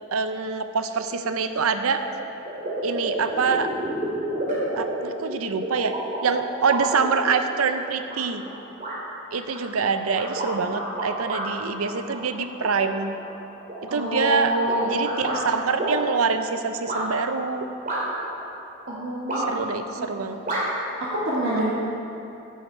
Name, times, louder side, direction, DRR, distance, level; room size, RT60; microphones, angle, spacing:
voice 1, 0.1-2.0 2.8-3.7 4.8-6.0 6.2-8.4 9.3-13.2 13.8-17.6 19.4-20.4 21.5-21.7, right 5 dB, 85° right, 8 dB, 0.6 m, -25 dB
sound 1, 2.0-2.1 2.4-7.5 8.1-8.5 8.8-9.0 9.5-11.4 11.8-12.7 13.2-15.4 15.8-16.0 16.9-17.0 17.8-18.3 19.3-19.7 20.5-20.6, right 1 dB, 40° right, 2.5 m, -30 dB
voice 2, 13.9-15.6 18.9-19.7 20.0-20.1 21.1-21.7, right 1 dB, 60° right, -8 dB, 1.5 m, -27 dB
10.5 x 9.2 x 4.4 m, 2.8 s
head